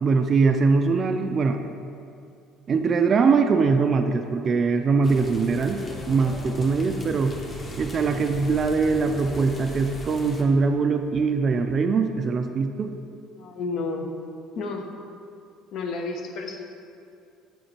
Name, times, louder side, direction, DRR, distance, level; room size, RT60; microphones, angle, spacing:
voice 1, 0.0-1.6 2.7-5.8 6.1-7.4 7.8-12.9, right 4 dB, 40° right, 6 dB, 0.4 m, -22 dB
sound 1, 5.0-10.4, left 1 dB, 30° left, 1.2 m, -38 dB
voice 2, 13.4-14.1 14.6-14.9 15.7-16.6, left 3 dB, 60° left, 3 dB, 0.9 m, -31 dB
9.4 x 4.4 x 4.4 m, 2.5 s
supercardioid pair, 100°, 0 cm